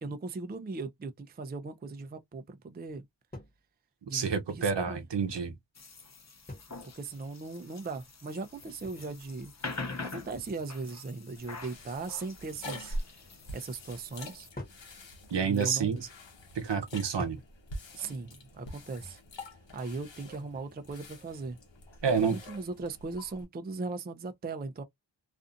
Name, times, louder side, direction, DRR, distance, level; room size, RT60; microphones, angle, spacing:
voice 1, 0.0-3.0 4.1-5.0 6.9-9.5 10.0-13.0 13.5-14.5 15.4-16.0 17.9-19.2 19.7-21.6 22.2-24.8, right 3 dB, 25° right, 0.4 m, -38 dB
sound 1, 3.3-3.6 5.0-5.6 6.5-6.9 8.6-9.1 10.3-10.8 12.3-12.9 14.5-14.8 15.9-16.2 17.2-17.6, left 1 dB, 20° left, 1.0 m, -46 dB
voice 2, 4.1-5.5 15.3-16.0 16.5-17.4 22.0-22.4, right 6 dB, 65° right, 0.8 m, -28 dB
sound 2, 5.8-14.5, left 3 dB, 35° left, 0.7 m, -45 dB
sound 3, 11.4-23.4, equal, 80° left, 0.9 m, -45 dB
2.5 x 2.4 x 2.5 m
wide cardioid pair, 60°, 45 cm